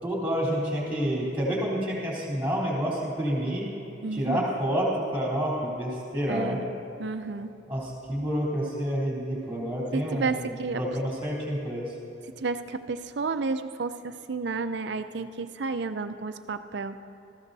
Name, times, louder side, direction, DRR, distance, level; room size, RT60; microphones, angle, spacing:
voice 1, 0.0-3.7 4.1-6.6 7.7-11.9, equal, 10° right, -5 dB, 3.5 m, -29 dB
voice 2, 4.0-4.4 6.3-6.7 7.0-7.5 9.9-10.8 12.4-17.0, right 4 dB, 65° right, 9 dB, 0.5 m, -31 dB
19.0 x 14.0 x 2.7 m, 3.0 s
head